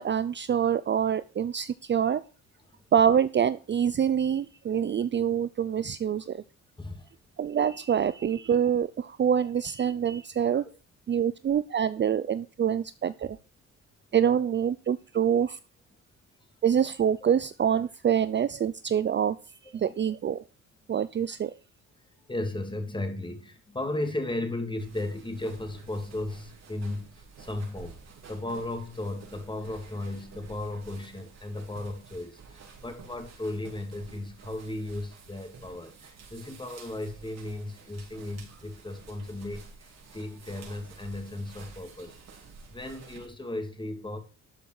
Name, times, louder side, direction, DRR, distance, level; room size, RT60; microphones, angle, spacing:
voice 1, 0.0-2.2 2.9-6.4 7.4-10.6 11.1-13.4 14.1-15.6 16.6-19.4 19.7-20.4 20.9-21.6, right 8 dB, 35° right, 15 dB, 0.6 m, -26 dB
voice 2, 6.8-7.1 10.5-10.6 22.3-28.0 28.3-42.2 42.7-44.2, left 1 dB, 15° left, 6 dB, 2.8 m, -35 dB
sound 1, 24.8-43.3, right 4 dB, 60° right, 4.5 m, -50 dB
12.5 x 8.4 x 4.8 m, 0.32 s
cardioid pair, 90°, 30 cm